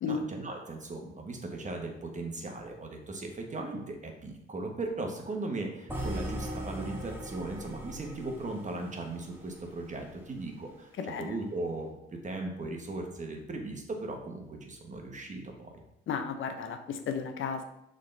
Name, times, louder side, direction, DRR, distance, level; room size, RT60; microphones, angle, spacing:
voice 1, 0.0-15.7, right 2 dB, 35° right, 2 dB, 1.3 m, -38 dB
sound 1, 5.9-10.0, right 1 dB, 10° right, 1.5 m, -39 dB
voice 2, 11.0-11.3 16.1-17.6, left 6 dB, 75° left, 7 dB, 0.7 m, -34 dB
6.4 x 3.8 x 3.9 m, 0.83 s
cardioid pair, 75°, 21 cm